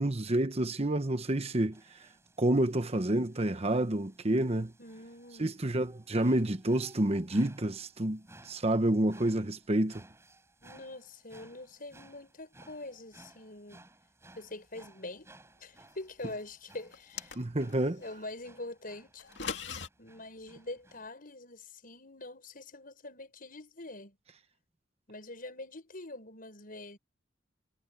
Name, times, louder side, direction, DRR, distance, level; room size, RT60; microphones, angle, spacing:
voice 1, 0.0-1.8 2.4-4.7 5.4-10.0 17.4-18.0, right 1 dB, 35° right, 1.0 m, -29 dB
sound 1, 1.7-21.1, right 2 dB, 15° right, 4.7 m, -59 dB
voice 2, 4.8-5.6 10.6-13.8 14.4-15.3 15.6-17.4 18.0-19.3 20.0-24.2 25.1-27.0, left 2 dB, 50° left, 7.1 m, -44 dB
sound 2, 16.9-17.8 19.2-19.9, left 6 dB, 70° left, 2.6 m, -39 dB
head